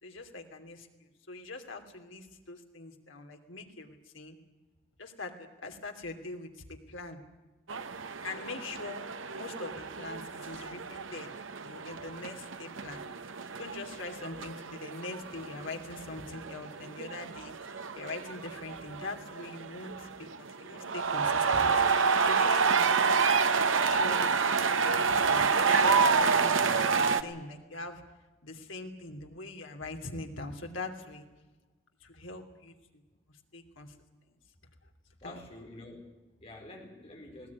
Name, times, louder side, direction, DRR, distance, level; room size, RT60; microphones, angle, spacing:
voice 1, 0.0-0.9 1.3-4.4 5.0-7.2 8.2-9.0 9.3-11.3 11.6-13.0 13.6-17.5 17.9-23.1 23.8-28.0 28.4-31.3 32.0-33.0 33.5-33.9 35.2-35.4, left 2 dB, 85° left, 4 dB, 2.9 m, -42 dB
sound 1, 7.7-27.2, right 5 dB, 85° right, 1.1 m, -29 dB
voice 2, 35.2-37.5, left 2 dB, 30° left, 1 dB, 4.7 m, -48 dB
19.5 x 18.0 x 9.5 m, 1.1 s
head